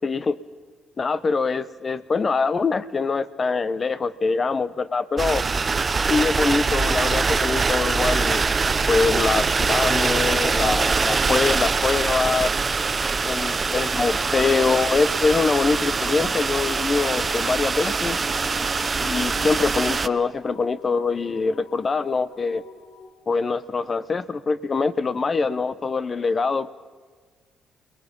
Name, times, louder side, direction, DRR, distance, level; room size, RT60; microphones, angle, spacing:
voice 1, 0.0-0.4 1.0-5.4 6.1-8.5 8.9-12.5 13.2-18.2 19.0-22.6 23.3-26.7, left 4 dB, 35° left, 16 dB, 0.9 m, -24 dB
sound 1, 5.2-20.1, right 4 dB, 30° right, 0.7 m, -23 dB
sound 2, 15.7-23.1, left 5 dB, 60° left, 2.8 m, -48 dB
29.5 x 20.5 x 5.4 m, 1.5 s
cardioid pair, 90°, 0 cm